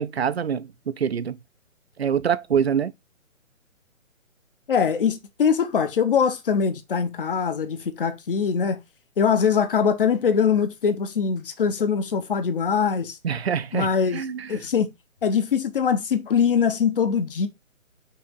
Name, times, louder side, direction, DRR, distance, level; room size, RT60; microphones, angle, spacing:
voice 1, 0.0-1.4 2.0-2.9 13.2-14.5, right 7 dB, 50° right, 0.6 m, -25 dB
voice 2, 4.7-8.8 9.2-13.2 13.7-14.2 14.5-14.9 15.2-17.5, left 6 dB, 40° left, 1.0 m, -22 dB
5.9 x 3.5 x 4.6 m
figure-of-eight pair, 140°, 42 cm